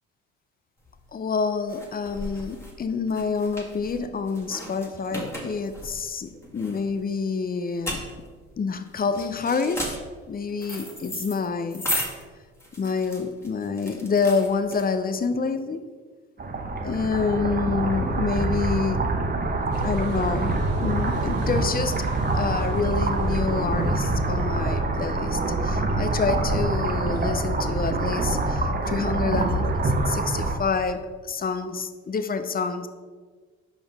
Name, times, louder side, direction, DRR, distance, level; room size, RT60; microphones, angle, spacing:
sound 1, 0.9-15.3, left 1 dB, 10° left, 1.6 m, -36 dB
voice 1, 1.1-8.0 8.6-9.9 10.3-11.8 12.8-15.8 16.8-19.0 19.8-21.9 22.3-32.9, left 5 dB, 30° left, 10 dB, 0.6 m, -27 dB
sound 2, 16.4-30.6, right 2 dB, 30° right, 0.9 m, -25 dB
Car passing by / Idling / Accelerating revving vroom, 19.7-24.8, right 3 dB, 50° right, 1.1 m, -36 dB
5.3 x 5.3 x 3.5 m, 1.5 s
hypercardioid pair, 60°, 32 cm